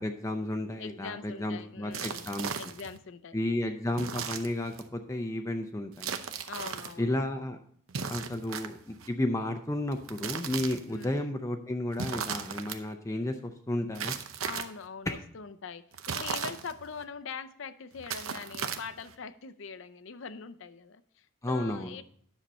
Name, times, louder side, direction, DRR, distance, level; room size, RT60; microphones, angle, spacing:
voice 1, 0.0-2.5 3.3-6.2 7.0-7.6 8.1-14.2 15.1-15.2 21.4-22.0, left 1 dB, 15° left, 5 dB, 0.5 m, -32 dB
voice 2, 0.8-3.4 6.5-7.1 10.9-11.3 14.4-15.8 16.1-22.0, left 5 dB, 70° left, 11 dB, 0.5 m, -43 dB
sound 1, 1.9-3.0 3.9-4.9 6.0-6.9 7.9-9.1 9.9-11.0 11.9-12.8 13.9-14.8 15.9-17.0 17.9-19.1, right 6 dB, 85° right, 0.8 m, -36 dB
10.0 x 6.6 x 4.1 m, 0.62 s
head